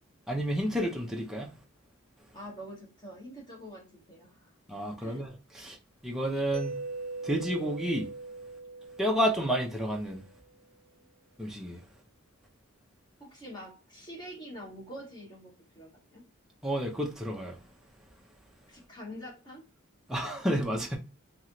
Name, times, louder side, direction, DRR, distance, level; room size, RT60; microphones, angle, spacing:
voice 1, 0.3-1.5 4.7-5.8 6.0-6.8 7.2-8.1 9.0-10.2 11.4-11.8 16.6-17.6 20.1-21.0, equal, ahead, 0.5 m, -30 dB
voice 2, 2.3-4.5 5.0-5.2 13.2-16.2 18.7-19.6, equal, 20° left, 1.4 m, -45 dB
Mallet percussion, 6.5-10.3, right 3 dB, 75° right, 0.4 m, -41 dB
3.1 x 2.8 x 2.7 m
head